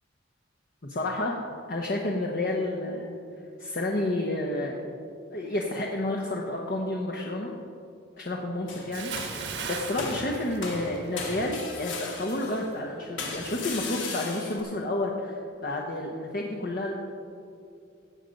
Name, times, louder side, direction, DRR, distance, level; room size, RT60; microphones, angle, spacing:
voice 1, 0.8-1.4 1.7-3.2 3.6-4.8 5.3-7.5 8.2-16.9, left 1 dB, 50° left, -1 dB, 1.1 m, -30 dB
sound 1, 8.7-9.5 10.0-12.7 13.2-14.6, left 4 dB, 85° left, 2.4 m, -37 dB
Bathtub (filling or washing) / Splash splatter, 8.9-11.3 11.7-11.9, right 5 dB, 70° right, 1.4 m, -37 dB
17.0 x 7.8 x 5.3 m, 2.5 s
head